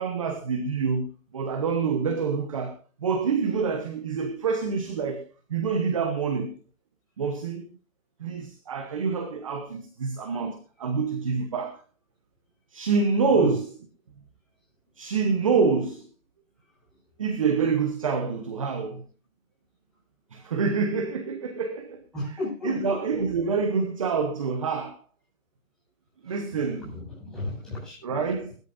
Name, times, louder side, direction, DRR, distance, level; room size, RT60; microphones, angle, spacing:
voice 1, 0.0-6.5 7.2-7.7 8.2-11.8 12.7-13.8 15.0-16.1 17.2-19.0 20.3-25.0 26.2-26.9 28.0-28.5, right 5 dB, 25° right, 1.0 m, -27 dB
voice 2, 22.1-23.2 26.3-26.4 26.9-28.0, left 1 dB, ahead, 8.0 m, -34 dB
20.0 x 13.5 x 2.6 m
hypercardioid pair, 170°, 42 cm